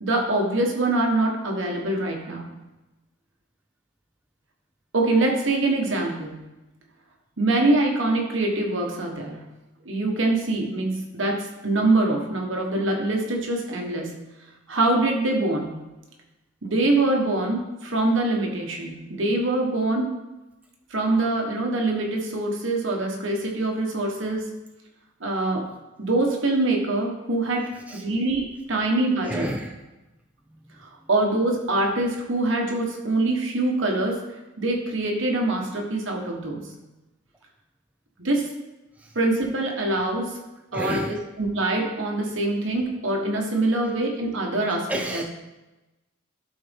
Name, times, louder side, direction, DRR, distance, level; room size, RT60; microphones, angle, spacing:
voice 1, 0.0-2.5 4.9-6.4 7.4-9.4 9.8-14.1 14.7-15.8 16.6-20.1 20.9-24.5 25.2-25.7 26.0-29.5 30.8-34.2 34.6-36.7 38.2-38.5 39.1-40.4 40.7-45.2, right 2 dB, 65° right, 1 dB, 1.4 m, -24 dB
voice 2, 29.2-29.8 39.0-39.2 40.7-41.2 43.8-43.9 44.9-45.2, right 1 dB, 5° right, 3 dB, 0.4 m, -30 dB
12.0 x 4.1 x 3.6 m, 1.0 s
head